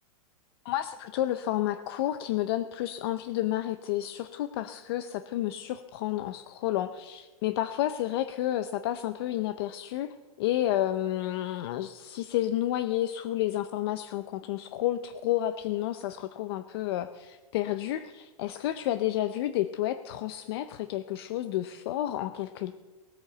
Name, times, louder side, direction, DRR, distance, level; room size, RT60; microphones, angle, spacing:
voice 1, 0.6-22.7, left 13 dB, 45° left, 11 dB, 0.6 m, -30 dB
19.0 x 8.9 x 6.8 m, 1.2 s
supercardioid pair, 160°, 18 cm